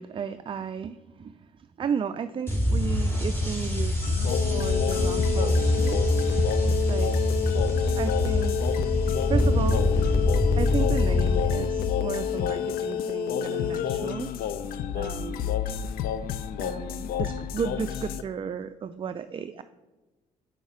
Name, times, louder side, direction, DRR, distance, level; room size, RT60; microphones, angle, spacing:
voice 1, 0.0-6.2 6.9-7.3 8.0-8.9 9.3-9.9 10.6-14.3 14.9-15.6 16.6-19.6, right 7 dB, 35° right, 11 dB, 0.4 m, -34 dB
sound 1, 2.5-11.4, left 1 dB, 15° left, 2.3 m, -24 dB
sound 2, 4.0-18.2, left 9 dB, 65° left, 0.5 m, -29 dB
6.6 x 5.4 x 4.9 m, 1.1 s
hypercardioid pair, 55°, 16 cm